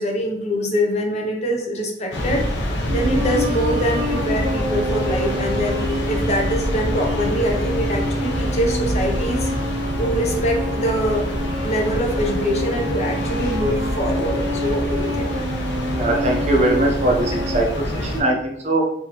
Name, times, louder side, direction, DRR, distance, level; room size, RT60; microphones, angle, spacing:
voice 1, 0.0-9.5 10.0-11.3 11.6-15.3, equal, 35° left, 1 dB, 0.7 m, -24 dB
sound 1, 2.1-18.2, equal, 85° left, 0.7 m, -26 dB
sound 2, 2.9-17.6, equal, 70° right, 0.8 m, -28 dB
voice 2, 15.9-18.9, right 2 dB, 35° right, 0 dB, 0.6 m, -21 dB
4.6 x 2.7 x 2.9 m, 0.83 s
head